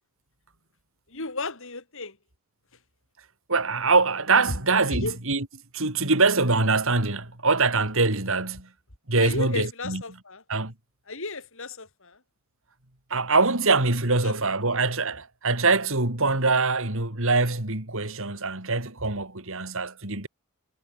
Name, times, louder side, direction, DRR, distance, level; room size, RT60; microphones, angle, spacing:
voice 1, 1.1-2.2 4.8-5.2 9.2-10.4 11.1-12.2 14.2-14.3 14.6-14.7, left 3 dB, 65° left, 5.4 m, -34 dB
voice 2, 3.5-5.5 5.7-8.7 9.1-10.0 10.5-10.7 13.1-20.3, right 3 dB, 65° right, 4.0 m, -23 dB
head